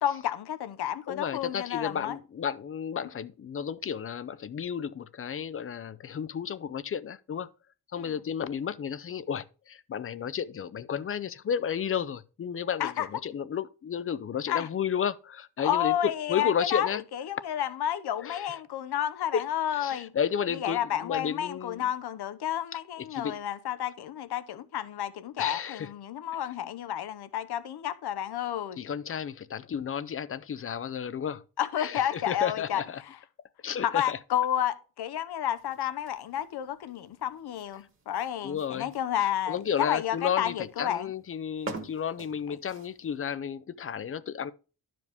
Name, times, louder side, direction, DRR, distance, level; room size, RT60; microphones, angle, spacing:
voice 1, 0.0-2.2 8.0-8.1 12.8-13.1 14.5-14.7 15.6-20.1 20.5-28.8 31.6-32.8 33.8-41.1 42.5-42.6, left 10 dB, 90° left, 0.9 m, -31 dB
voice 2, 1.1-7.5 7.9-17.0 18.2-18.6 19.3-19.4 19.7-21.9 23.1-23.4 25.4-25.9 28.8-31.4 31.8-33.0 33.6-34.2 38.4-38.9 39.5-44.5, left 8 dB, 35° left, 0.4 m, -32 dB
sound 1, 35.5-43.2, right 3 dB, 35° right, 1.5 m, -47 dB
12.0 x 5.0 x 3.4 m
wide cardioid pair, 180°, 38 cm